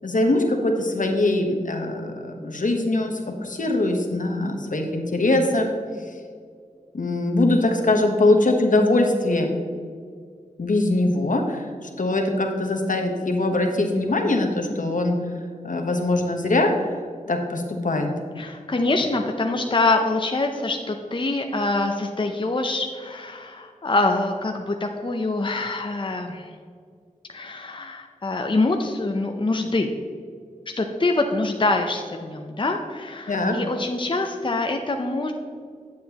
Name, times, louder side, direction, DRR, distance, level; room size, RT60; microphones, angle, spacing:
voice 1, 0.0-5.7 6.9-9.5 10.6-15.2 15.6-16.7 17.3-18.1 33.3-33.6, left 2 dB, 70° left, 3 dB, 1.1 m, -22 dB
voice 2, 18.4-26.5 27.3-29.9 30.8-35.3, left 2 dB, 35° left, 4 dB, 0.6 m, -25 dB
9.3 x 7.5 x 2.9 m, 2.1 s
wide cardioid pair, 55°, 14 cm